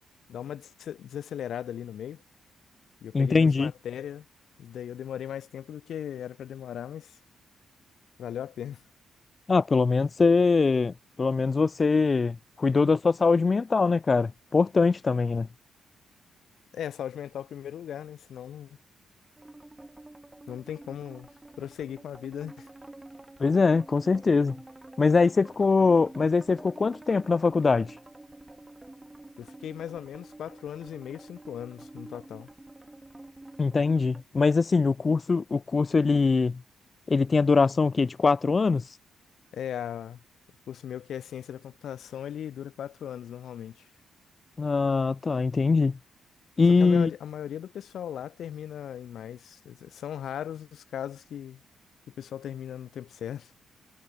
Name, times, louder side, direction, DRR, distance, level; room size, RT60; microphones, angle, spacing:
voice 1, 0.3-2.2 3.0-4.3 4.6-7.2 8.2-8.8 16.7-18.8 20.5-21.3 21.6-22.7 29.4-32.5 39.5-40.2 40.7-43.9 46.8-51.6 52.1-53.5, left 9 dB, 70° left, 1.5 m, -38 dB
voice 2, 3.1-3.7 9.5-15.5 23.4-24.6 25.0-27.9 33.6-36.6 37.1-38.8 44.6-46.0 46.6-47.1, left 4 dB, 30° left, 0.5 m, -23 dB
sound 1, 19.4-34.2, right 2 dB, 10° right, 3.8 m, -48 dB
cardioid pair, 115°, 0 cm